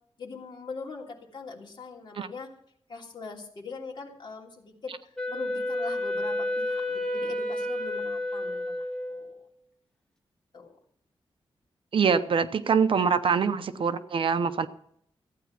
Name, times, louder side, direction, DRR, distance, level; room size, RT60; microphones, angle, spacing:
voice 1, 0.2-2.5 2.9-8.7 9.1-9.4 10.5-10.8, left 4 dB, 50° left, -1 dB, 2.9 m, -41 dB
Wind instrument woodwind instrument, 5.2-9.5, left 1 dB, 5° left, 2.0 m, -31 dB
voice 2, 11.9-14.7, right 6 dB, 60° right, 11 dB, 0.8 m, -24 dB
15.0 x 9.3 x 5.9 m, 0.67 s
wide cardioid pair, 155°, 10 cm